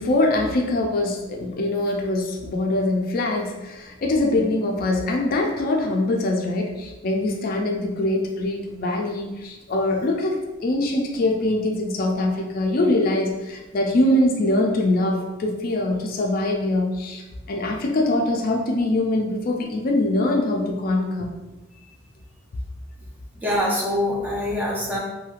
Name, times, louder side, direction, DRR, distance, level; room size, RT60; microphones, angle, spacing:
voice 1, 0.0-17.2 17.5-21.3, left 2 dB, 50° left, 1 dB, 0.4 m, -23 dB
voice 2, 23.4-25.0, left 1 dB, 10° right, -4 dB, 0.5 m, -24 dB
3.0 x 2.7 x 2.4 m, 1.1 s
head